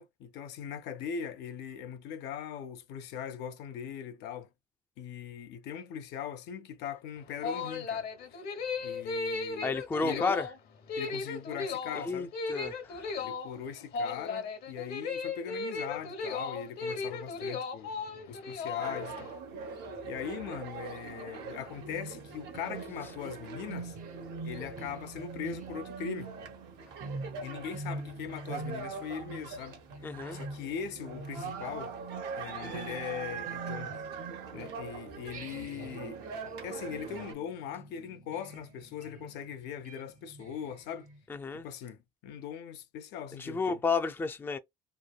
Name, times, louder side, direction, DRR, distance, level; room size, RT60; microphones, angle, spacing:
voice 1, 0.0-4.5 5.0-8.1 8.8-9.7 10.0-10.4 11.0-12.3 13.2-17.9 18.3-19.3 20.0-24.0 24.4-26.3 27.4-29.8 30.3-31.9 32.4-34.0 34.5-36.2 36.6-41.1 41.5-43.8, left 8 dB, 80° left, 0.5 m, -40 dB
sound 1, 7.2-19.3, left 4 dB, 65° left, 0.9 m, -36 dB
voice 2, 9.6-10.5 12.1-13.0 30.0-30.4 41.3-41.7 43.4-44.6, left 4 dB, 15° left, 0.3 m, -31 dB
sound 2, 18.8-37.3, right 5 dB, 80° right, 0.9 m, -43 dB
sound 3, 21.8-34.9 35.3-41.2, right 3 dB, 50° right, 0.7 m, -45 dB
3.1 x 2.2 x 2.2 m
cardioid pair, 110°, 17 cm